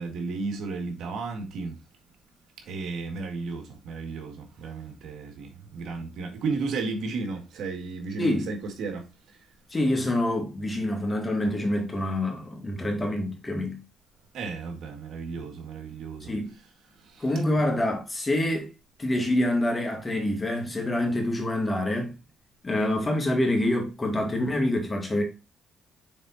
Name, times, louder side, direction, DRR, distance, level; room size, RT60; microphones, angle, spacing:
voice 1, 0.0-1.8 2.7-9.1 14.3-16.3 17.0-17.3, right 4 dB, 75° right, 1.9 m, -33 dB
voice 2, 8.2-8.5 9.7-13.8 16.3-16.5 17.2-18.7 19.0-22.2 22.6-25.2, left 1 dB, 25° left, 2.1 m, -26 dB
6.6 x 3.9 x 4.1 m
cardioid pair, 90°, 0 cm